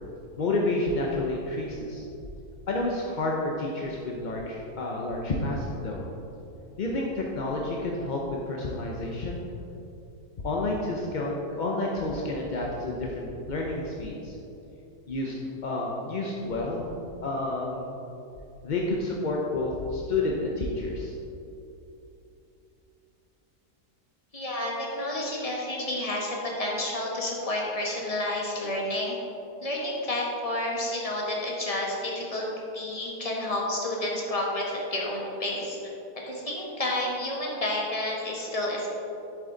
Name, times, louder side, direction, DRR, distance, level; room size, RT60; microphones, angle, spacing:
voice 1, 0.4-2.0 2.7-6.0 6.8-9.4 10.4-14.4 15.1-15.4 15.6-16.9 17.2-18.0 18.6-21.1, left 2 dB, 45° left, -2 dB, 0.6 m, -30 dB
voice 2, 24.3-29.2 29.6-32.4 32.7-35.8 36.3-38.9, left 1 dB, 25° left, -3 dB, 1.4 m, -30 dB
7.8 x 7.6 x 3.9 m, 2.9 s
omnidirectional pair, 1.6 m